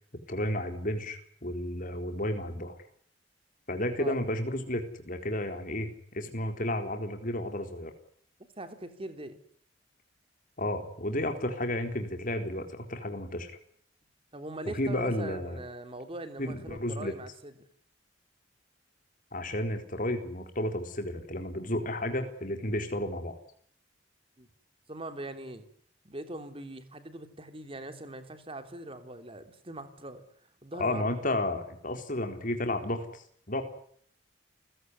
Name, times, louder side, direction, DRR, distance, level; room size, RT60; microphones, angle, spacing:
voice 1, 0.3-2.8 3.7-7.9 10.6-13.5 14.7-15.6 16.4-17.1 19.3-23.4 30.8-33.6, left 1 dB, 45° left, 4.0 m, -32 dB
voice 2, 8.6-9.4 14.3-17.5 24.4-24.5 24.9-25.7 26.1-30.2 30.6-31.1, right 1 dB, 30° right, 3.4 m, -41 dB
30.0 x 16.0 x 9.6 m
head